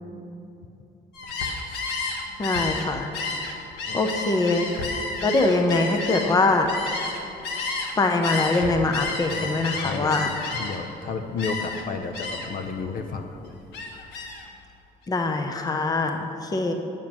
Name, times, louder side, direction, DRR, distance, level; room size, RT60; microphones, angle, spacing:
Gull seagull, 1.1-7.9 8.2-10.9 11.4-11.8 12.1-12.6 13.0-14.5, left 3 dB, 85° left, 1.3 m, -31 dB
voice 1, 2.4-3.1 3.9-4.7 5.2-6.7 8.0-10.3 15.1-16.7, left 3 dB, 20° left, 5 dB, 0.7 m, -23 dB
voice 2, 9.3-10.2 10.5-13.4, left 4 dB, 55° left, 6 dB, 0.8 m, -32 dB
9.1 x 7.1 x 6.0 m, 2.8 s
cardioid pair, 110°, 17 cm